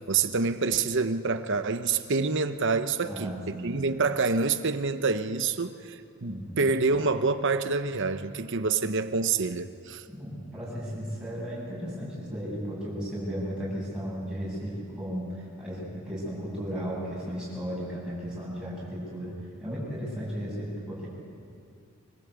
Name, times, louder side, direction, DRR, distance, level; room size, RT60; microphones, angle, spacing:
voice 1, 0.0-10.0, right 4 dB, 55° right, 10 dB, 0.9 m, -27 dB
voice 2, 3.0-3.7 6.3-6.7 10.1-19.3 19.6-21.1, equal, 5° right, -7 dB, 7.8 m, -35 dB
25.0 x 16.0 x 8.3 m, 2.5 s
head